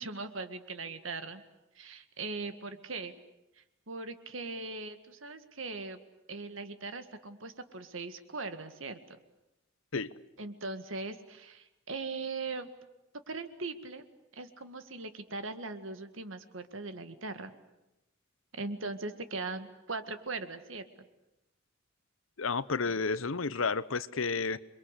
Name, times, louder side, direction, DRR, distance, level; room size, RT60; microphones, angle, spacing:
voice 1, 0.0-1.4 1.8-3.1 3.6-6.0 6.3-9.2 10.4-12.7 13.3-14.0 14.3-17.5 18.5-20.9, right 3 dB, 75° right, 1.9 m, -40 dB
voice 2, 22.4-24.6, left 4 dB, 90° left, 0.9 m, -31 dB
28.0 x 22.5 x 8.3 m
head